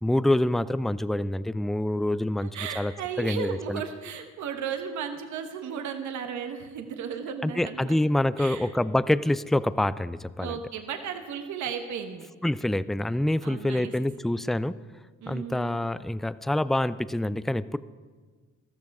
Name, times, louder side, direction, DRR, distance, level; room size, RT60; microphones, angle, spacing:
voice 1, 0.0-2.5 2.8-2.9 3.2-3.8 7.4-10.6 12.4-14.8 15.3-17.8, left 1 dB, ahead, 16 dB, 0.3 m, -26 dB
voice 2, 2.4-8.0 8.4-8.7 10.4-12.3 13.4-13.9 15.2-15.8, right 7 dB, 70° right, 6 dB, 1.2 m, -35 dB
13.5 x 13.0 x 4.7 m, 1.4 s
cardioid pair, 90°, 30 cm